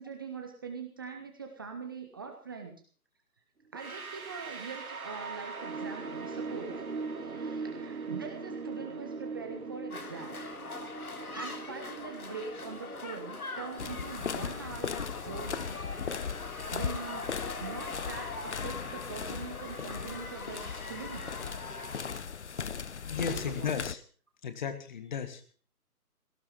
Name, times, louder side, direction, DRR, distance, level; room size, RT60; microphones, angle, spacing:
voice 1, 0.0-2.8 3.7-6.9 7.2-10.4 11.3-16.4 16.7-17.3 17.6-21.3 23.2-23.7, right 5 dB, 15° right, 3 dB, 0.9 m, -43 dB
sound 1, 3.7-14.6, right 4 dB, 65° right, 2.7 m, -41 dB
sound 2, 9.9-22.2, left 3 dB, 70° left, 3.1 m, -42 dB
sound 3, 13.8-23.9, left 6 dB, 50° left, 0.7 m, -38 dB
voice 2, 23.0-24.0 24.4-25.5, left 7 dB, 30° left, 10 dB, 1.8 m, -35 dB
17.5 x 13.0 x 5.5 m, 0.43 s
figure-of-eight pair, 150°, 46 cm